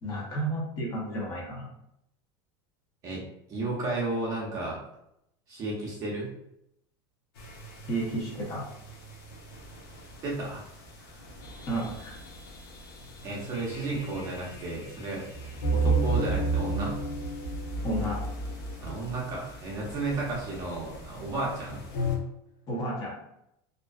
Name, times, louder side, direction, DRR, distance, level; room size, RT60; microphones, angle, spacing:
voice 1, 0.0-1.7 7.9-8.6 11.7-12.2 17.8-18.2 22.7-23.1, right 1 dB, 30° left, -3 dB, 0.8 m, -32 dB
voice 2, 3.5-4.8 5.5-6.3 10.2-10.6 11.0-11.2 13.2-15.3 15.7-17.0 18.8-21.8, right 2 dB, 30° right, -4 dB, 0.7 m, -33 dB
sound 1, 7.4-22.2, right 2 dB, 80° left, 0.7 m, -34 dB
2.5 x 2.2 x 2.3 m, 0.79 s
supercardioid pair, 155°, 12 cm